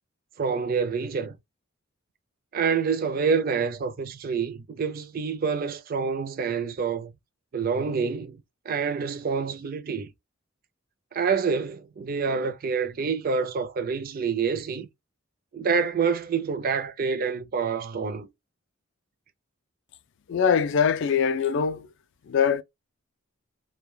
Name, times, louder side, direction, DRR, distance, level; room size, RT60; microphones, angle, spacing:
voice 1, 0.4-1.4 2.5-7.1 7.5-10.1 11.1-14.9 15.5-18.3, right 5 dB, 45° right, 0.4 m, -27 dB
voice 2, 20.3-21.9 22.3-22.6, left 7 dB, 55° left, 0.3 m, -22 dB
2.2 x 2.2 x 3.1 m
head